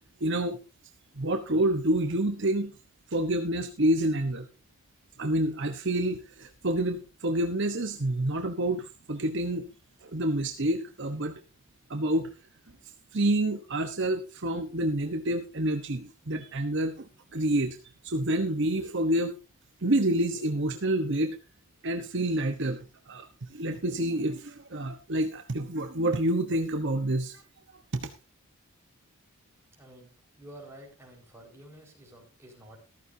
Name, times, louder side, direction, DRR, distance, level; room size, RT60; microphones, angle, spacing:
voice 1, 0.2-0.6 1.2-2.8 3.1-4.5 5.2-9.7 10.0-11.3 11.9-12.3 13.1-17.1 17.3-17.8 18.0-19.4 19.8-21.4 21.8-22.8 23.1-27.4 27.9-28.1, right 1 dB, 55° right, 6 dB, 1.1 m, -28 dB
voice 2, 29.8-30.1 30.4-32.8, right 1 dB, 10° right, 0 dB, 5.2 m, -50 dB
14.5 x 14.0 x 2.8 m, 0.29 s
head